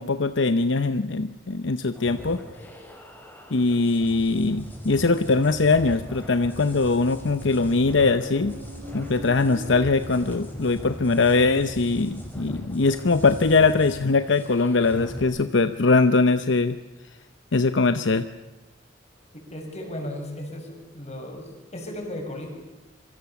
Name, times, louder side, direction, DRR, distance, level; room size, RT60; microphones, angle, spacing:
voice 1, 0.0-2.4 3.5-8.5 8.9-16.8 17.5-18.3, left 3 dB, 70° left, 11 dB, 0.8 m, -21 dB
sound 1, 1.9-15.2, equal, 10° left, 4.9 m, -39 dB
Motorcycle, 7.6-11.2, equal, 45° right, 4.1 m, -43 dB
voice 2, 19.5-22.5, left 1 dB, 35° left, 3 dB, 6.4 m, -35 dB
26.5 x 23.5 x 7.1 m, 1.0 s
head